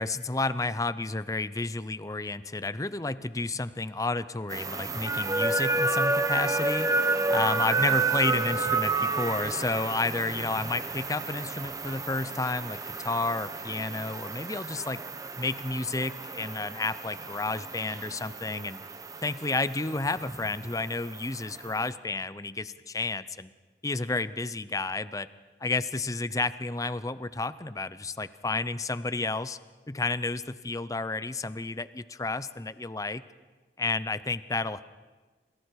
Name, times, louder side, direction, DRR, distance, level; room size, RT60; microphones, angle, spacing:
voice 1, 0.0-6.9 7.3-15.0 15.4-18.8 19.2-23.5 23.8-25.3 25.6-29.6 29.9-33.2 33.8-34.9, left 3 dB, 20° left, 15 dB, 0.7 m, -31 dB
sound 1, 4.5-21.9, right 3 dB, 20° right, 1.3 m, -31 dB
28.5 x 26.5 x 4.8 m, 1.3 s
head